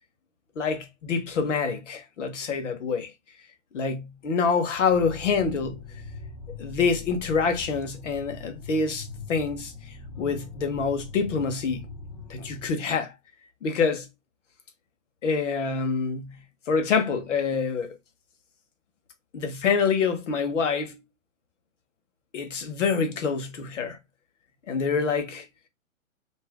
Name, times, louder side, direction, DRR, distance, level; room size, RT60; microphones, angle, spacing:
voice 1, 0.6-3.1 3.7-5.8 6.6-9.7 10.2-11.9 12.3-13.1 13.6-14.1 15.2-16.4 16.7-18.0 19.3-21.0 22.3-24.0 24.7-25.4, left 5 dB, 60° left, 1.1 m, -26 dB
sound 1, 4.9-12.7, left 4 dB, 40° left, 0.8 m, -41 dB
2.7 x 2.6 x 3.4 m
hypercardioid pair, 155°, 41 cm